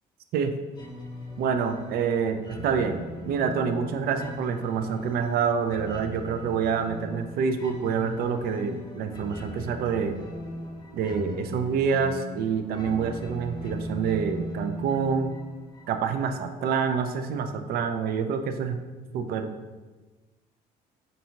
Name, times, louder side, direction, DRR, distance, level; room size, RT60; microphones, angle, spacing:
sound 1, 0.7-16.2, left 1 dB, 25° left, 0.7 m, -39 dB
voice 1, 1.4-10.2 10.9-15.3 15.9-18.8 19.1-19.5, right 6 dB, 65° right, 8 dB, 0.4 m, -27 dB
5.6 x 2.6 x 2.8 m, 1.2 s
cardioid pair, 110°, 17 cm